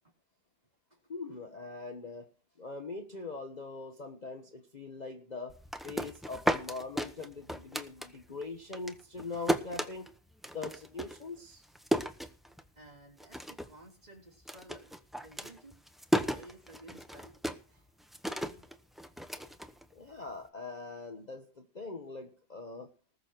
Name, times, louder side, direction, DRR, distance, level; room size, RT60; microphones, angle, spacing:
voice 1, 1.1-2.3 2.6-10.1 10.5-11.6 19.9-22.9, left 3 dB, 30° left, 4 dB, 1.2 m, -42 dB
sound 1, 5.5-8.4 8.7-12.9 13.2-13.8 14.1-20.3, equal, ahead, 0.6 m, -35 dB
voice 2, 12.8-15.8 16.1-17.3, right 2 dB, 25° right, 0 dB, 3.6 m, -54 dB
19.5 x 6.6 x 4.5 m, 0.37 s
omnidirectional pair, 1.7 m